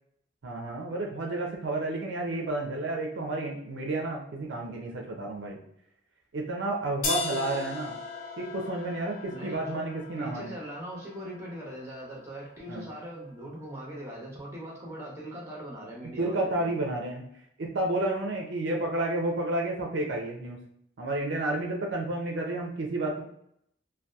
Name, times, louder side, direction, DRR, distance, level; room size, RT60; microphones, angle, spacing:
voice 1, 0.4-5.6 6.3-8.0 8.4-10.5 12.7-12.9 16.2-17.2 17.6-20.6 21.0-23.2, right 2 dB, 70° right, 0 dB, 0.4 m, -31 dB
sound 1, 7.0-13.0, left 3 dB, 45° left, 0.5 m, -38 dB
voice 2, 9.3-9.8 10.2-16.7, right 1 dB, 15° right, -4 dB, 0.7 m, -40 dB
2.7 x 2.2 x 2.2 m, 0.72 s
head